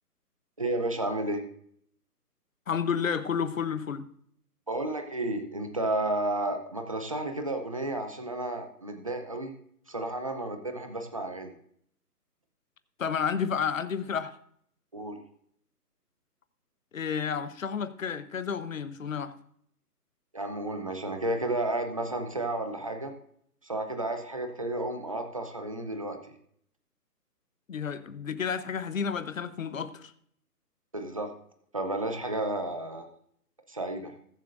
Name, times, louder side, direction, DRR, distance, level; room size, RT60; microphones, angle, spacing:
voice 1, 0.6-1.4 4.7-9.5 9.9-11.5 14.9-15.2 20.3-23.1 23.6-26.3 30.9-31.3 31.7-33.1 33.7-34.1, right 2 dB, 20° right, 6 dB, 0.7 m, -32 dB
voice 2, 2.7-4.1 13.0-14.3 16.9-19.3 27.7-30.1, left 7 dB, 55° left, 12 dB, 1.0 m, -31 dB
21.0 x 7.4 x 2.6 m, 0.66 s
hypercardioid pair, 160°, 48 cm